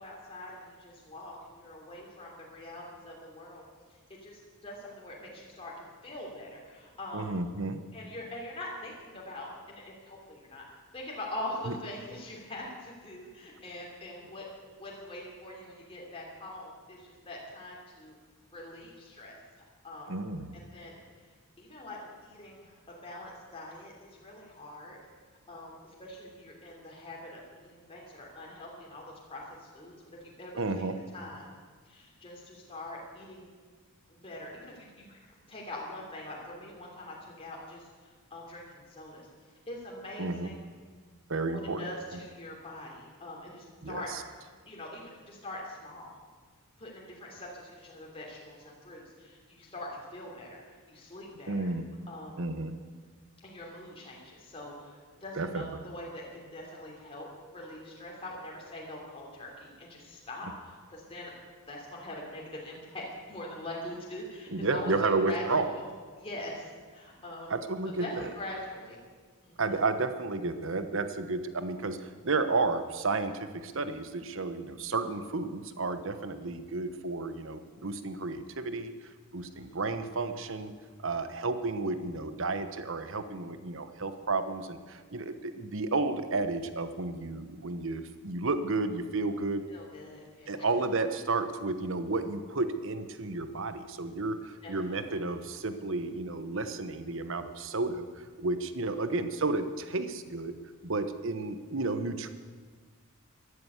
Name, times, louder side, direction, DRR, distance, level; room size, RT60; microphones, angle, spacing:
voice 1, 0.0-3.6 4.2-7.3 7.9-10.6 10.9-14.5 14.8-18.1 18.5-19.4 19.8-20.1 20.5-21.0 21.6-25.0 25.5-30.9 31.1-31.5 31.8-33.5 34.1-35.2 35.5-39.3 39.7-40.6 41.5-44.1 44.7-46.2 46.8-51.7 52.1-52.4 53.4-61.3 61.7-65.8 66.2-67.5 68.0-69.0 69.4-69.6 79.4-79.8 89.7-90.6 94.6-95.2, left 1 dB, 25° left, -3 dB, 3.2 m, -43 dB
voice 2, 7.1-7.8 11.7-11.8 20.1-20.5 30.6-30.9 40.2-40.5 41.3-42.2 43.8-44.2 51.5-51.8 52.4-52.7 55.3-55.7 64.5-65.6 67.5-68.3 69.6-78.9 79.3-80.7 81.0-89.6 90.5-100.6 100.8-102.3, right 3 dB, 65° right, 10 dB, 1.1 m, -32 dB
14.0 x 12.0 x 8.2 m, 1.5 s
head